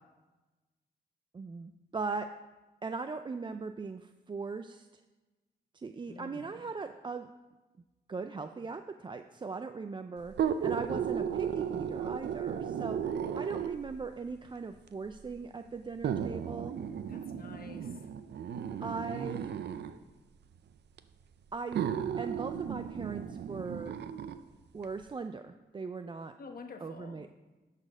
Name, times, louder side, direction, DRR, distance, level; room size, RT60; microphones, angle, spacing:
voice 1, 1.3-2.3 2.8-4.9 5.7-7.3 8.1-16.7 18.8-19.5 21.5-21.9 22.2-24.0 24.7-26.3 26.8-27.3, right 4 dB, 30° right, 8 dB, 0.3 m, -39 dB
voice 2, 6.1-6.4 17.1-17.9 26.4-27.2, left 4 dB, 60° left, 4 dB, 1.1 m, -48 dB
sound 1, 10.3-14.0 14.9-15.0 16.0-20.0 21.0-21.1 21.7-24.4 24.8-24.9, right 8 dB, 90° right, 0.5 m, -34 dB
11.5 x 4.2 x 6.2 m, 1.2 s
wide cardioid pair, 100°, 17 cm